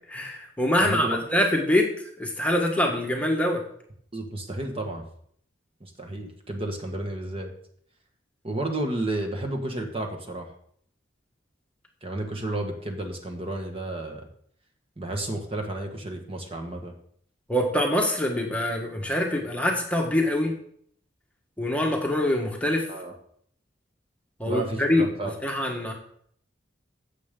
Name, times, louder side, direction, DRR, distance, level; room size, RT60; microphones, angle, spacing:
voice 1, 0.1-1.9 2.2-3.6 17.5-20.5 21.6-22.9 24.4-25.1 25.4-25.9, left 1 dB, 10° left, 1 dB, 1.2 m, -24 dB
voice 2, 0.8-1.2 4.1-5.0 5.8-7.5 8.4-10.5 12.0-14.3 15.0-16.9 22.9-23.1 24.4-25.3, right 1 dB, 30° right, 3 dB, 1.4 m, -32 dB
15.5 x 6.7 x 3.7 m, 0.64 s
head